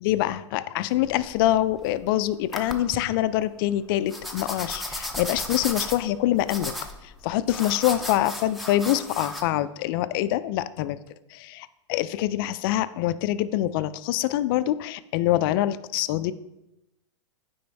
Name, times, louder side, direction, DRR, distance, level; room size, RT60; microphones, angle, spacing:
voice 1, 0.0-6.7 7.0-11.0 11.3-16.3, left 13 dB, 45° left, 14 dB, 0.4 m, -25 dB
sound 1, 1.0-2.0 2.5-3.0 4.1-9.4, left 1 dB, ahead, 0.6 m, -35 dB
9.3 x 3.4 x 3.4 m, 0.91 s
hypercardioid pair, 120°, 16 cm